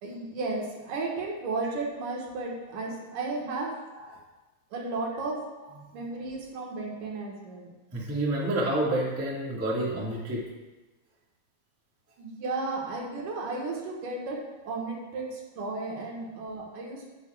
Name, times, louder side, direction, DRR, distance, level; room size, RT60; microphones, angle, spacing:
voice 1, 0.0-3.7 4.7-5.4 5.9-7.7 12.2-14.4 14.6-17.1, right 3 dB, 70° right, -2 dB, 2.9 m, -34 dB
voice 2, 7.9-10.4, right 1 dB, 20° right, -6 dB, 0.4 m, -29 dB
9.9 x 9.9 x 2.4 m, 1.1 s
omnidirectional pair, 3.9 m